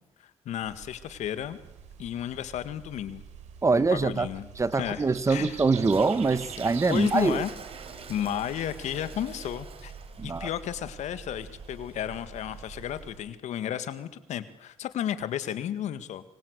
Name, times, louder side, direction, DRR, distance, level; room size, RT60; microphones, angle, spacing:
voice 1, 0.2-1.6 2.0-3.2 3.7-4.5 4.8-5.6 6.9-7.5 8.1-9.9 10.2-16.2, left 10 dB, 80° left, 1.8 m, -33 dB
sound 1, 0.6-13.2, right 6 dB, 80° right, 3.4 m, -46 dB
voice 2, 3.6-4.3 4.6-7.4 10.2-10.5, right 4 dB, 25° right, 1.2 m, -24 dB
Toilet flush, 5.6-13.1, right 5 dB, 55° right, 3.8 m, -46 dB
25.5 x 24.0 x 8.2 m
cardioid pair, 90°, 12 cm